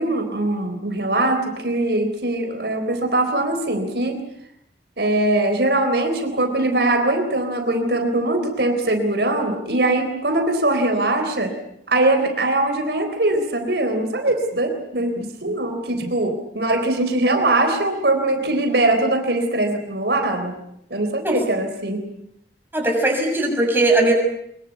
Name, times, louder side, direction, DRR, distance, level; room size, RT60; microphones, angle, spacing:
voice 1, 0.0-4.2 5.0-11.5 11.9-20.5 20.9-22.0, right 2 dB, 70° right, 6 dB, 3.9 m, -21 dB
voice 2, 22.7-24.1, right 2 dB, 10° right, 1 dB, 6.8 m, -19 dB
24.0 x 23.0 x 8.3 m, 0.76 s
head